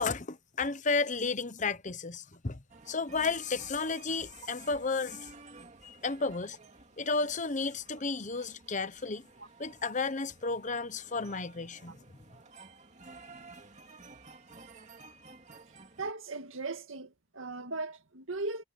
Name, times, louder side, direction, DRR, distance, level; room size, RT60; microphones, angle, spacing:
voice 1, 0.0-5.3 5.8-6.6 7.0-9.3 9.6-12.0, left 4 dB, 40° left, 1.0 m, -33 dB
sound 1, 2.7-16.1, right 3 dB, 35° right, 2.6 m, -53 dB
voice 2, 16.0-18.6, right 3 dB, 90° right, 2.0 m, -38 dB
head